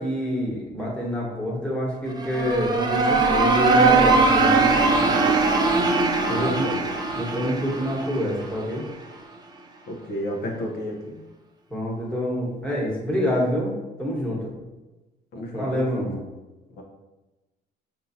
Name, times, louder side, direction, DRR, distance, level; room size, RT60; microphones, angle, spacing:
voice 1, 0.0-4.9 6.3-6.5 7.1-8.8 11.7-13.7 14.0-14.6 15.5-16.2, equal, 5° left, -4 dB, 1.3 m, -27 dB
sound 1, 2.1-8.9, right 3 dB, 25° right, 0.5 m, -21 dB
voice 2, 6.2-6.8 9.9-11.2 15.3-16.1 16.8-16.9, equal, 70° left, 1 dB, 0.9 m, -31 dB
5.5 x 2.7 x 2.7 m, 1.1 s
cardioid pair, 110°, 17 cm